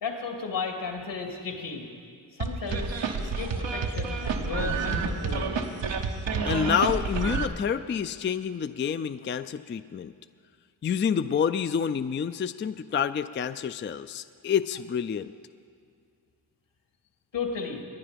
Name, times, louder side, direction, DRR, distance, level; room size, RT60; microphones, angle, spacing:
voice 1, 0.0-1.9 2.3-2.9 3.2-5.7 17.3-17.8, left 5 dB, 75° left, 2 dB, 2.4 m, -34 dB
sound 1, 2.4-7.5, right 4 dB, 90° right, 1.2 m, -29 dB
voice 2, 6.4-10.1 10.8-15.3, left 7 dB, 30° left, 12 dB, 0.4 m, -28 dB
21.0 x 9.7 x 5.2 m, 2.2 s
cardioid pair, 60°, 43 cm